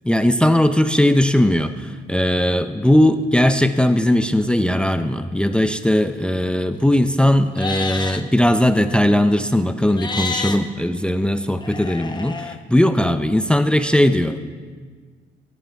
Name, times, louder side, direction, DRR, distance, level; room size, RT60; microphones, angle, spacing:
voice 1, 0.0-14.4, left 1 dB, 5° left, 10 dB, 0.5 m, -18 dB
Livestock farm animals working animals, 7.5-8.2 9.9-10.6 11.6-12.5, left 3 dB, 20° left, 0.9 m, -28 dB
15.0 x 11.5 x 3.5 m, 1.5 s
cardioid pair, 90°, 20 cm